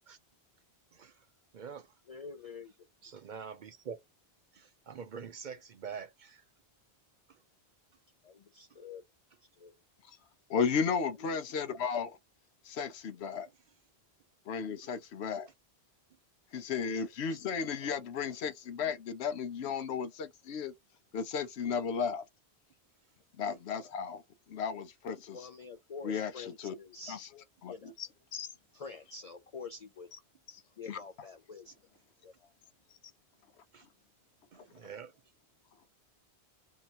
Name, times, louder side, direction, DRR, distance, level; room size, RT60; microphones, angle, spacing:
voice 1, 0.9-1.3 1.5-1.9 3.0-4.0 4.5-6.4 7.3-7.4 17.3-17.4 33.7-33.9 34.5-35.1, right 6 dB, 55° right, 0.6 m, -45 dB
voice 2, 2.1-2.7 8.2-9.0 9.6-9.8 11.2-11.4 25.3-27.2 27.7-27.9 28.7-30.1 30.8-31.7 32.2-32.3, left 4 dB, 55° left, 0.4 m, -46 dB
voice 3, 10.5-12.2 12.6-13.5 14.5-15.5 16.5-20.7 21.1-22.2 23.4-24.2 24.5-25.4 26.0-26.7 27.1-27.3 27.6-28.5 30.9-31.0, left 6 dB, 80° left, 0.9 m, -34 dB
2.8 x 2.6 x 4.3 m
omnidirectional pair, 1.1 m